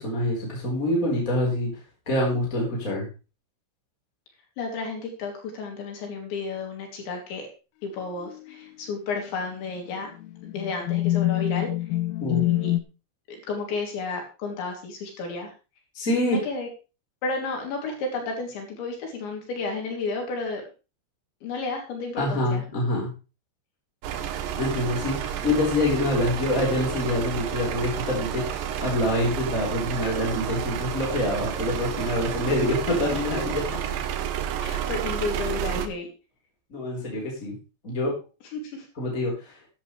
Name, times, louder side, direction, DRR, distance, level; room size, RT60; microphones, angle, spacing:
voice 1, 0.0-3.1 12.2-12.4 15.9-16.4 22.2-23.1 24.6-33.8 36.7-37.5 37.8-38.1 39.0-39.6, left 1 dB, 20° left, -2 dB, 4.1 m, -26 dB
voice 2, 4.6-7.4 7.8-10.1 10.4-11.7 12.3-12.7 13.3-15.5 16.1-16.7 17.2-20.6 21.4-22.6 34.6-36.1 38.5-38.9, left 3 dB, 70° left, 1 dB, 5.1 m, -32 dB
sound 1, 8.2-8.5 9.3-9.4 10.2-12.8, left 16 dB, 90° left, 2.1 m, -25 dB
sound 2, 24.0-35.9, right 9 dB, 85° right, 2.0 m, -30 dB
15.0 x 11.0 x 3.3 m, 0.31 s
omnidirectional pair, 5.6 m